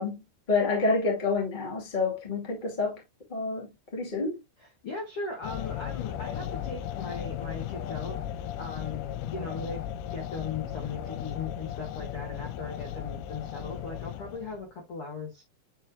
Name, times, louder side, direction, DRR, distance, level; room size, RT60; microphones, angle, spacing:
voice 1, 0.0-3.0 3.3-3.7 3.9-4.4, left 3 dB, 20° left, 1.5 m, -28 dB
voice 2, 4.6-8.2 8.6-9.8 10.1-15.5, left 4 dB, 50° left, 1.7 m, -38 dB
sound 1, 5.4-14.6, left 10 dB, 85° left, 2.4 m, -36 dB
9.7 x 4.4 x 2.2 m
omnidirectional pair, 4.9 m